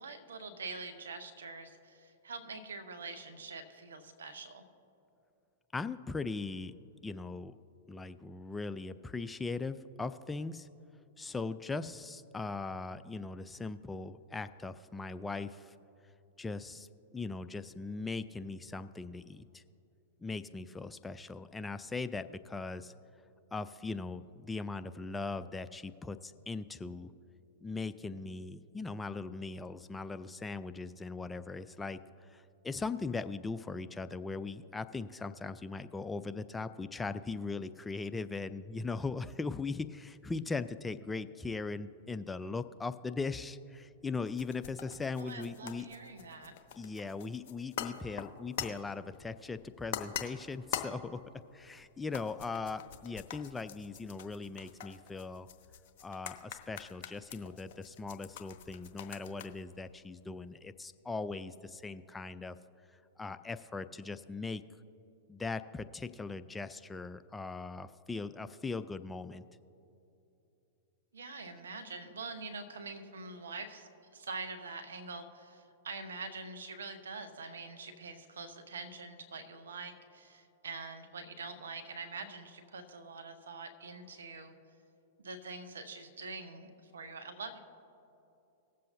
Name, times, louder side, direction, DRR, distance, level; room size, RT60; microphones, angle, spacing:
voice 1, 0.0-4.6 45.2-46.5 71.1-84.5 85.2-87.6, right 3 dB, 80° right, 8 dB, 1.1 m, -45 dB
voice 2, 5.7-6.7 7.0-7.6 7.9-10.7 11.2-15.7 16.4-19.6 20.2-22.9 23.5-27.1 27.6-45.9 46.8-51.2 51.5-55.5 56.0-62.6 63.2-64.6 65.3-69.5, left 3 dB, 10° left, 12 dB, 0.4 m, -39 dB
sound 1, 44.3-60.7, left 9 dB, 55° left, 0.9 m, -45 dB
19.5 x 7.5 x 2.7 m, 2.8 s
hypercardioid pair, 105°, 0 cm